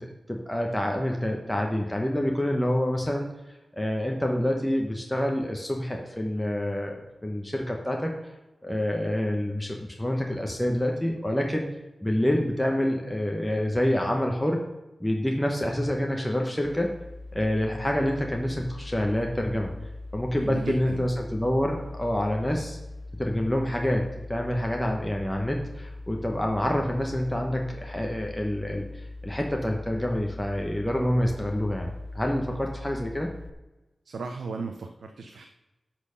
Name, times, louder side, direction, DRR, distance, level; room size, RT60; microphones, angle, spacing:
voice 1, 0.0-3.3 3.7-8.1 8.6-11.6 12.0-14.6 15.0-16.9 17.3-19.7 20.1-22.8 23.2-31.9 32.1-33.3, left 1 dB, 5° left, 1 dB, 1.1 m, -27 dB
sound 1, 16.6-33.5, left 2 dB, 55° left, 0.6 m, -41 dB
voice 2, 20.4-21.0 34.0-35.5, right 4 dB, 85° right, 4 dB, 0.7 m, -35 dB
11.5 x 4.4 x 6.9 m, 1.0 s
wide cardioid pair, 100°, 0 cm